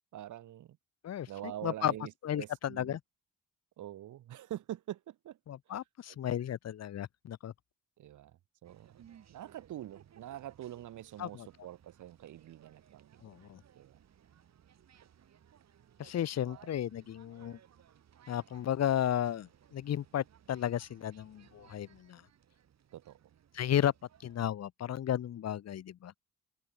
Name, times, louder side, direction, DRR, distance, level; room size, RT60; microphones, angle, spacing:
voice 1, 0.1-0.8 1.3-3.0 3.8-5.4 5.7-5.8 8.0-9.0 9.3-13.3 13.7-14.0 16.4-16.7 22.9-23.2, right 12 dB, 75° right, 4.7 m, -45 dB
voice 2, 1.6-1.9 2.2-3.0 5.5-7.5 11.2-11.5 13.2-13.6 16.0-17.6 18.3-22.2 23.5-23.9 24.2-26.1, left 10 dB, 60° left, 1.4 m, -33 dB
sound 1, 8.6-24.4, right 9 dB, 60° right, 7.8 m, -62 dB
cardioid pair, 90°, 30 cm